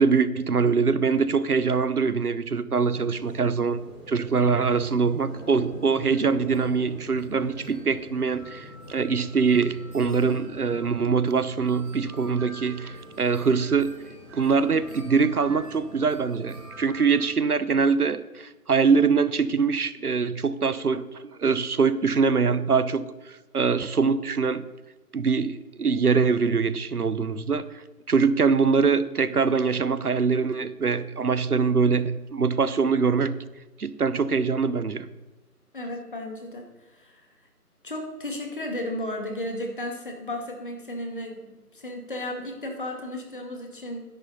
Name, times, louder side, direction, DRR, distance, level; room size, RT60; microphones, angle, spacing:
voice 1, 0.0-3.8 4.1-13.9 14.3-23.1 23.5-24.6 25.1-27.7 28.1-33.4 33.8-35.1, right 5 dB, 70° right, 15 dB, 0.9 m, -23 dB
sound 1, 2.8-17.2, equal, 15° right, 3.9 m, -44 dB
voice 2, 35.7-37.3 37.8-41.4 41.7-44.0, left 1 dB, 35° left, 2 dB, 2.1 m, -34 dB
13.0 x 10.5 x 4.1 m, 1.2 s
figure-of-eight pair, 165°, 46 cm